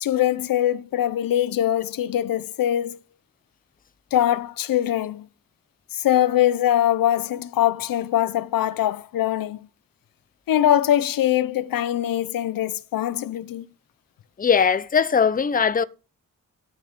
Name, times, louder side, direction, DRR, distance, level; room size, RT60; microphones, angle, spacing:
voice 1, 0.0-3.0 4.1-5.3 5.9-9.6 10.5-13.6, left 12 dB, 85° left, 0.7 m, -22 dB
voice 2, 14.4-15.8, left 6 dB, 25° left, 0.7 m, -20 dB
13.0 x 6.0 x 5.2 m
cardioid pair, 105°, 33 cm